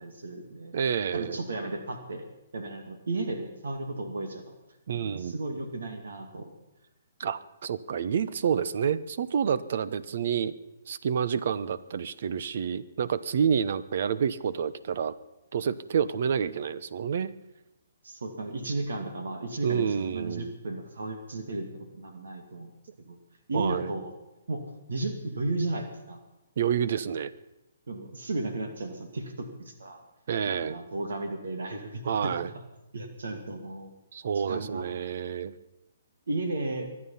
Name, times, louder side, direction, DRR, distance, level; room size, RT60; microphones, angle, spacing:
voice 1, 0.0-0.7 1.1-2.2 2.5-4.5 4.9-6.5 18.0-22.7 23.0-23.2 23.5-24.1 24.5-24.6 24.9-26.2 27.9-30.0 30.4-32.6 32.9-33.9 34.3-34.9 36.3-36.9, right 2 dB, 75° right, 6 dB, 2.3 m, -34 dB
voice 2, 0.7-1.4 4.9-5.4 7.2-10.5 10.9-15.1 15.5-17.3 19.6-20.5 23.5-23.9 26.6-27.3 30.3-30.8 32.0-32.5 34.1-35.5, right 7 dB, 60° right, 16 dB, 0.8 m, -28 dB
24.0 x 9.8 x 5.7 m, 0.96 s
hypercardioid pair, 140°, 0 cm